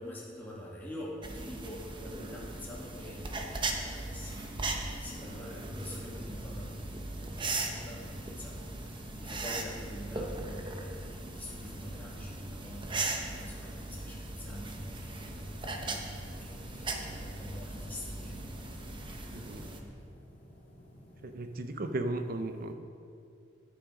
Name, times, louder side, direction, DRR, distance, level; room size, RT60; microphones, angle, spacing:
voice 1, 0.0-18.4 19.1-19.5, equal, 10° left, -5 dB, 2.1 m, -45 dB
sound 1, 1.2-19.8, right 2 dB, 25° right, 0.9 m, -39 dB
sound 2, 16.1-21.5, equal, 50° left, 2.6 m, -55 dB
voice 2, 19.3-19.6 21.2-22.7, right 2 dB, 50° right, 8 dB, 0.7 m, -35 dB
10.0 x 8.8 x 5.2 m, 2.5 s
head